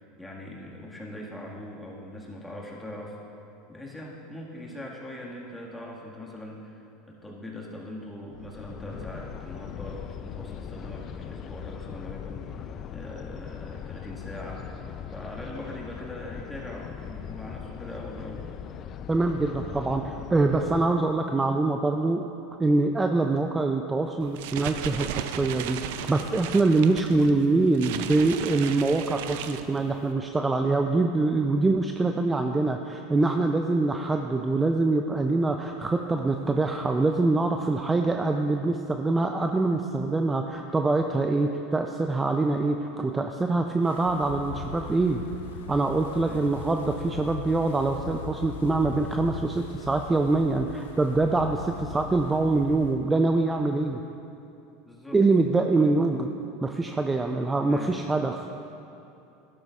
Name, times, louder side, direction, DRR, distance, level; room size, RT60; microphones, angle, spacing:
voice 1, 0.2-3.2 3.7-14.7 15.1-18.5 46.2-46.4 54.8-55.2 55.8-56.0 57.7-58.0, left 1 dB, 10° left, -3 dB, 1.8 m, -41 dB
sound 1, 8.3-20.9, left 8 dB, 40° left, 0.4 m, -39 dB
voice 2, 19.1-22.2 22.6-45.2 45.7-54.0 55.1-56.3 56.6-58.4, right 3 dB, 15° right, 4 dB, 0.5 m, -24 dB
sound 2, 24.2-30.1, right 9 dB, 70° right, 0.4 m, -36 dB
Wind, 43.8-53.0, left 7 dB, 80° left, 0.6 m, -40 dB
12.0 x 11.0 x 2.4 m, 2.7 s
hypercardioid pair, 95°, 0 cm